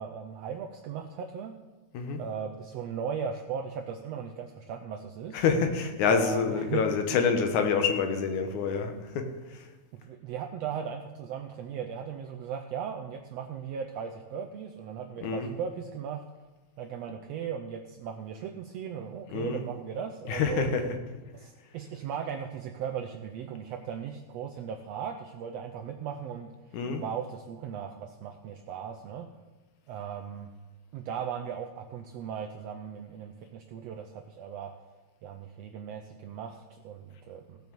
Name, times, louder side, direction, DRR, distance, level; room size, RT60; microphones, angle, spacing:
voice 1, 0.0-1.5 2.2-5.4 6.1-6.8 10.0-16.2 16.8-20.7 21.3-29.3 29.9-30.5 30.9-34.7 35.2-37.6, right 7 dB, 75° right, 5 dB, 1.6 m, -37 dB
voice 2, 5.3-9.6 15.2-15.5 19.3-19.6 20.2-21.0 26.7-27.1, left 5 dB, 85° left, 6 dB, 2.6 m, -27 dB
16.0 x 6.2 x 6.9 m, 1.2 s
omnidirectional pair, 3.3 m